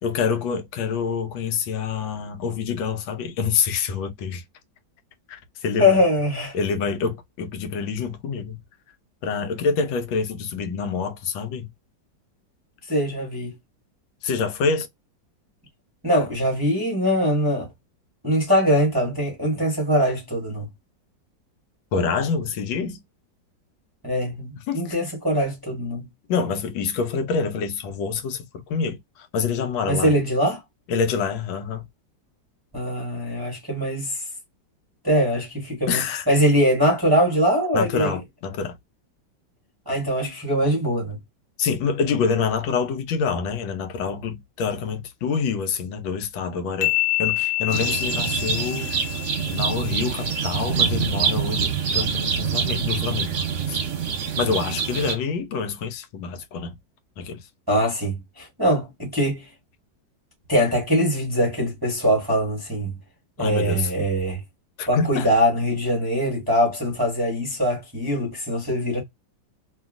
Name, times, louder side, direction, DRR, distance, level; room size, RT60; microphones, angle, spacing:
voice 1, 0.0-4.4 5.3-6.0 6.5-8.6 9.2-11.7 14.2-14.9 21.9-23.0 24.7-25.0 26.3-30.1 30.9-31.9 35.9-36.3 37.7-38.7 41.6-53.8 54.4-56.8 57.2-57.5 63.4-63.9 64.8-65.3, left 5 dB, 80° left, 1.4 m, -26 dB
voice 2, 5.8-6.6 12.9-13.5 16.0-17.7 18.2-20.7 24.0-26.0 29.9-30.6 32.7-34.2 35.0-36.0 36.3-38.1 39.9-41.2 57.7-59.5 60.5-62.9 63.4-64.4 64.9-69.0, equal, 15° right, 0.7 m, -22 dB
sound 1, 46.8-50.3, left 18 dB, 60° left, 0.9 m, -27 dB
sound 2, 47.7-55.1, right 7 dB, 50° right, 0.9 m, -25 dB
2.9 x 2.7 x 2.4 m
omnidirectional pair, 2.1 m